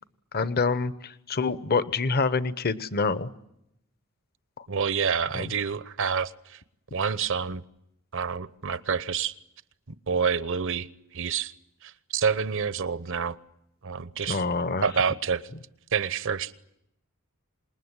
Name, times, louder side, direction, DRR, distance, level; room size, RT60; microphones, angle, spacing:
voice 1, 0.3-3.3 4.6-4.7 5.3-5.5 14.3-14.9, left 4 dB, 45° left, 1.0 m, -26 dB
voice 2, 4.7-6.6 6.9-7.6 8.1-9.3 10.1-10.9 11.1-11.5 11.8-13.4 13.8-14.4 14.8-15.5 15.9-16.5, right 6 dB, 65° right, 0.9 m, -28 dB
27.0 x 20.5 x 9.7 m
head